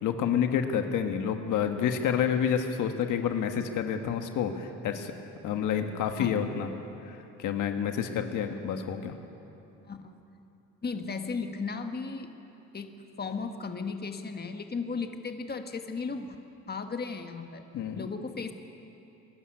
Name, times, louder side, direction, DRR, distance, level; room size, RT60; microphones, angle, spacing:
voice 1, 0.0-5.1 5.4-6.7 7.0-9.2 17.7-18.1, left 8 dB, 85° left, 6 dB, 1.4 m, -29 dB
voice 2, 9.9-10.2 10.8-12.3 12.7-16.4 16.7-17.6 17.9-18.5, left 4 dB, 30° left, 6 dB, 1.6 m, -35 dB
22.5 x 13.0 x 9.8 m, 2.9 s
cardioid pair, 90°, 30 cm